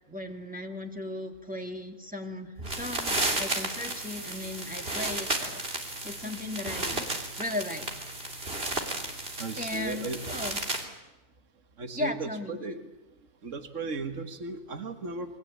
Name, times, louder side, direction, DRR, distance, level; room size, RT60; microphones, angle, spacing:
voice 1, 0.1-7.0 7.4-7.9 9.6-10.7 11.9-12.6, left 1 dB, 5° right, 3 dB, 2.4 m, -36 dB
sound 1, 2.6-10.8, right 2 dB, 45° right, 3.5 m, -33 dB
voice 2, 9.4-10.3 11.8-12.8 13.4-15.4, right 3 dB, 65° right, 8 dB, 2.0 m, -36 dB
29.0 x 23.0 x 8.6 m, 0.99 s
omnidirectional pair, 1.4 m